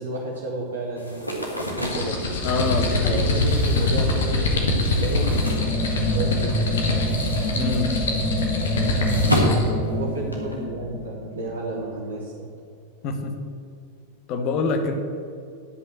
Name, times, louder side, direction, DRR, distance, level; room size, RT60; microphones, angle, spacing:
voice 1, 0.0-2.2 3.1-5.4 5.8-6.7 9.9-12.5, right 2 dB, 65° right, -2 dB, 1.2 m, -32 dB
sound 1, 1.0-6.4 6.7-10.6, equal, 85° left, 1.6 m, -30 dB
sound 2, 1.8-9.7, left 2 dB, 65° left, 1.6 m, -24 dB
voice 2, 2.4-3.2 7.6-7.9 13.0-13.3 14.3-14.9, left 4 dB, 40° left, 5 dB, 1.2 m, -25 dB
sound 3, 5.2-11.9, left 1 dB, 10° right, 2.0 m, -27 dB
9.8 x 5.5 x 7.5 m, 2.4 s
figure-of-eight pair, 90°, 0 cm